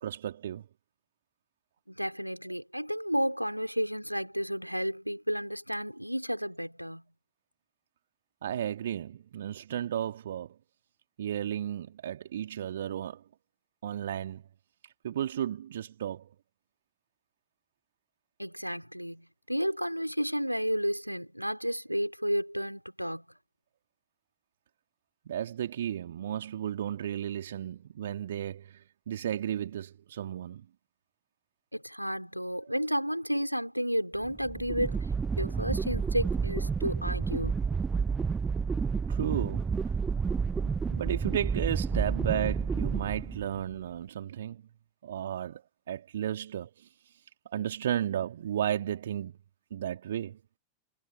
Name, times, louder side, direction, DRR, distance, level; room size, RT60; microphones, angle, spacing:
voice 1, 0.0-0.7 8.4-10.6 11.2-13.3 13.8-14.4 14.8-16.3 25.3-30.6 39.1-39.9 40.6-44.6 45.0-45.6 45.9-49.3 49.7-50.4, right 10 dB, 60° right, 1.8 m, -34 dB
voice 2, 1.9-7.0 18.4-23.2 31.7-35.1 35.4-37.7 41.9-42.1, equal, 90° right, 4.2 m, -32 dB
sound 1, 34.2-43.7, right 5 dB, 15° right, 0.6 m, -30 dB
figure-of-eight pair, 90°, 0 cm